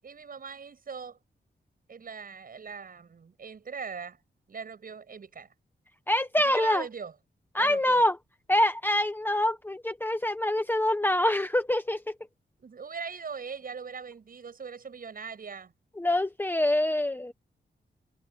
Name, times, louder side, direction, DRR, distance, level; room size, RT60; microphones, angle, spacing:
voice 1, 0.0-1.2 1.9-4.2 4.5-5.5 6.5-7.1 7.6-8.0 12.6-15.7, right 5 dB, 50° right, 7.8 m, -40 dB
voice 2, 6.1-6.8 7.5-8.2 8.5-12.1 16.0-17.3, left 1 dB, 10° left, 1.0 m, -25 dB
wide cardioid pair, 165°, 18 cm